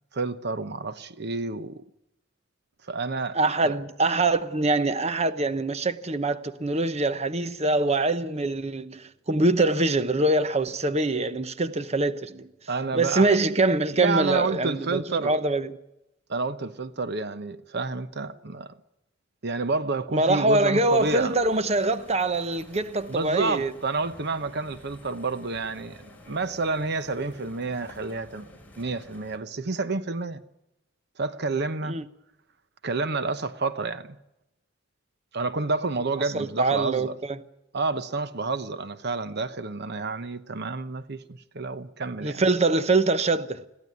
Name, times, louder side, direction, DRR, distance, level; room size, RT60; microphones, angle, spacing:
voice 1, 0.1-1.8 2.8-3.4 3.6-3.7 12.7-13.4 13.9-15.4 16.3-18.7 19.4-21.4 23.1-30.4 31.2-32.0 32.8-34.2 35.3-37.2 37.7-42.4, right 3 dB, 60° right, 0.9 m, -29 dB
voice 2, 3.3-12.5 12.9-15.7 20.1-23.7 31.9-32.0 36.3-37.4 42.2-43.7, right 2 dB, 35° right, 1.0 m, -24 dB
sound 1, 20.9-29.4, left 1 dB, 10° left, 4.7 m, -50 dB
22.0 x 15.5 x 9.8 m
head